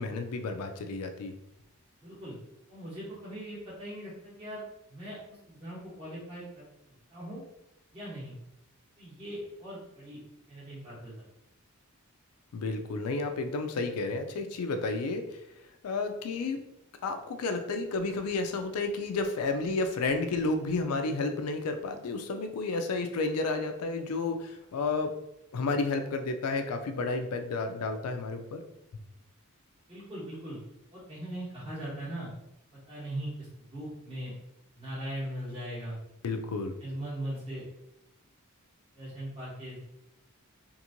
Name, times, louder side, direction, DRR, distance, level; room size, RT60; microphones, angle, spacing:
voice 1, 0.0-1.3 12.5-15.4 15.8-16.6 17.0-25.1 25.5-28.6 36.2-36.7, left 3 dB, 85° left, 6 dB, 0.4 m, -31 dB
voice 2, 2.0-2.3 2.7-4.6 4.9-6.7 7.1-7.4 7.9-8.3 9.0-10.2 10.5-11.2 29.9-30.6 30.9-32.3 32.9-33.3 33.7-34.3 34.7-36.0 36.8-37.6 39.0-39.9, right 1 dB, 25° right, -9 dB, 1.0 m, -39 dB
2.9 x 2.6 x 2.5 m, 0.84 s
head